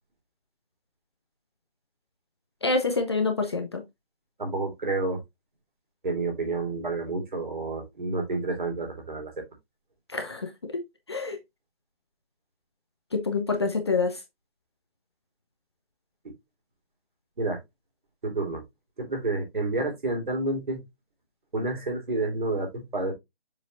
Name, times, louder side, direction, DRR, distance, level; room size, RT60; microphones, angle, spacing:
voice 1, 2.6-3.8 10.1-10.8 11.1-11.4 13.1-14.2, left 3 dB, 25° left, 0.7 m, -27 dB
voice 2, 4.4-5.2 6.0-9.3 16.2-16.3 17.4-17.6 18.2-18.6 19.0-20.8 21.5-23.1, right 2 dB, 50° right, 3.3 m, -29 dB
7.0 x 5.6 x 2.5 m
figure-of-eight pair, 150°, 30 cm